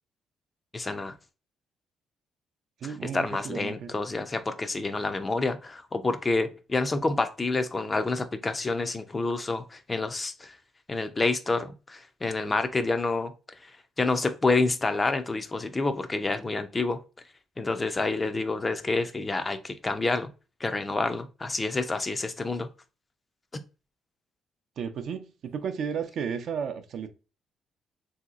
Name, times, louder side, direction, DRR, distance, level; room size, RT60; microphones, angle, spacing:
voice 1, 0.7-1.1 2.8-10.5 10.9-13.3 14.0-17.0 17.6-20.3 20.6-22.7, left 3 dB, 25° left, 0.4 m, -28 dB
voice 2, 2.8-3.9 24.8-27.1, right 7 dB, 65° right, 0.4 m, -33 dB
3.1 x 2.8 x 2.4 m
cardioid pair, 90°, 0 cm